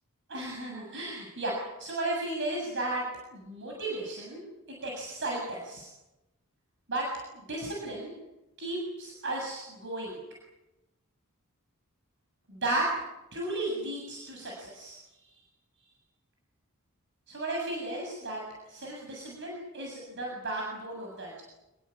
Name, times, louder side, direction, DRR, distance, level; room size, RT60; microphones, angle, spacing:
voice 1, 0.3-4.4 4.8-5.9 6.9-7.1 7.3-8.1 8.6-10.2 12.5-12.9 13.3-15.3 17.3-18.4 18.7-21.4, right 2 dB, 55° right, -1 dB, 7.6 m, -34 dB
28.5 x 21.5 x 8.6 m, 0.98 s
head